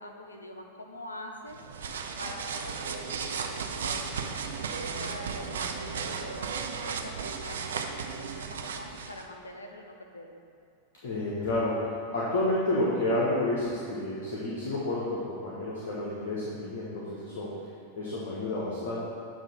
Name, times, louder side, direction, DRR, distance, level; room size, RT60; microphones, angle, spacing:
voice 1, 0.0-1.7 2.2-10.4, left 1 dB, 80° left, 2 dB, 0.6 m, -44 dB
sound 1, 1.5-9.2, right 5 dB, 65° right, 0.4 m, -35 dB
voice 2, 11.0-17.7 17.9-19.0, left 1 dB, 55° left, -7 dB, 1.1 m, -30 dB
7.7 x 2.9 x 5.7 m, 2.5 s
figure-of-eight pair, 90°, 0 cm